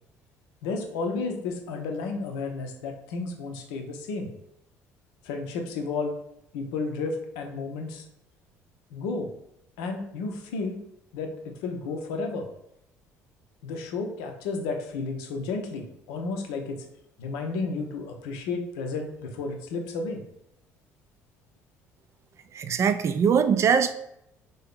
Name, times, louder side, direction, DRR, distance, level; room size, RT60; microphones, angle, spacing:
voice 1, 0.6-4.3 5.2-6.1 6.5-8.0 8.9-9.3 9.8-10.8 11.1-12.5 13.6-16.8 17.2-20.2, left 3 dB, 65° left, 4 dB, 0.6 m, -32 dB
voice 2, 22.5-23.9, right 7 dB, 35° right, 10 dB, 0.3 m, -22 dB
3.5 x 2.8 x 3.5 m, 0.78 s
figure-of-eight pair, 55°, 8 cm